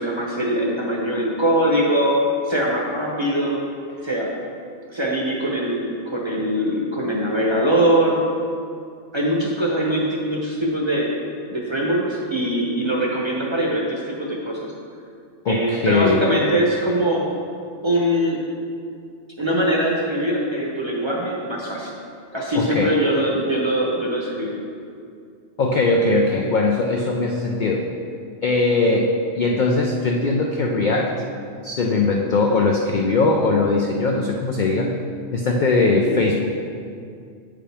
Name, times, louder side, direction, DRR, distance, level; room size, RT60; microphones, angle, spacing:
voice 1, 0.0-2.2 2.5-3.6 4.0-4.3 4.9-8.2 9.1-11.1 11.5-14.7 15.5-17.3 17.8-18.4 19.4-21.9 22.3-24.5 35.8-36.3, right 1 dB, 25° right, -3 dB, 0.7 m, -22 dB
voice 2, 15.4-16.2 22.6-23.0 25.6-27.9 28.4-31.2 31.6-34.9 35.3-36.5, left 3 dB, 70° left, 0 dB, 0.4 m, -20 dB
8.4 x 4.9 x 3.4 m, 2.3 s
omnidirectional pair, 1.4 m